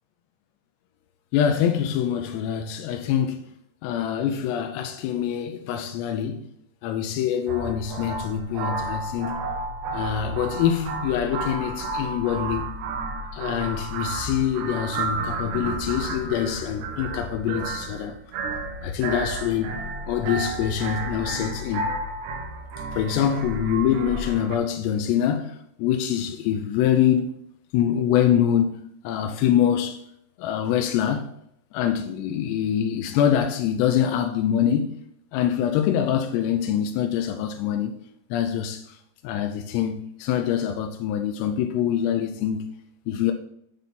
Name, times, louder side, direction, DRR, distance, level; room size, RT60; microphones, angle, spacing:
voice 1, 1.3-3.4 3.8-6.5 6.8-9.5 9.9-12.8 13.3-18.2 18.8-19.8 20.1-21.9 22.9-27.3 27.7-30.0 30.4-31.3 31.7-35.0 35.3-37.9 38.3-39.0 39.2-42.7 43.1-43.3, left 9 dB, 90° left, 2.7 m, -24 dB
sound 1, 7.5-24.6, right 3 dB, 85° right, 3.1 m, -32 dB
8.2 x 4.0 x 5.8 m
omnidirectional pair, 4.9 m